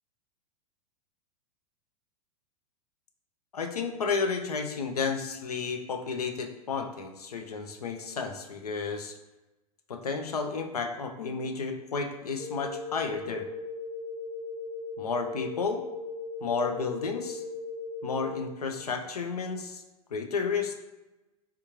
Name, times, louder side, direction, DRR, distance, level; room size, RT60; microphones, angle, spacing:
voice 1, 3.5-9.1 9.9-13.5 15.0-15.8 16.4-17.4 18.0-19.8 20.1-20.7, left 5 dB, 75° left, 5 dB, 0.6 m, -32 dB
sound 1, 12.4-18.4, left 3 dB, 15° left, 1.1 m, -38 dB
3.5 x 3.5 x 2.9 m, 1.0 s
figure-of-eight pair, 95°, 20 cm